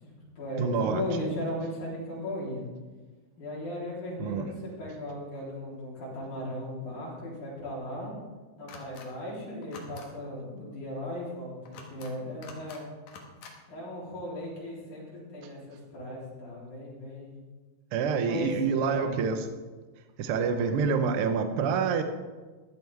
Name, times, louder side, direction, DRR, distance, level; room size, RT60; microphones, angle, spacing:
voice 1, 0.0-2.6 3.4-8.1 8.6-12.9 13.7-17.3 18.2-19.1, left 1 dB, 65° left, -5 dB, 5.1 m, -37 dB
voice 2, 0.6-1.3 4.2-4.5 17.9-19.4 20.2-22.0, right 5 dB, 65° right, 7 dB, 1.4 m, -27 dB
sound 1, 8.7-9.1 9.6-10.1 11.7-12.1 12.4-12.8 13.1-13.5, left 4 dB, 80° left, 3.1 m, -46 dB
14.5 x 12.0 x 3.5 m, 1.3 s
omnidirectional pair, 3.8 m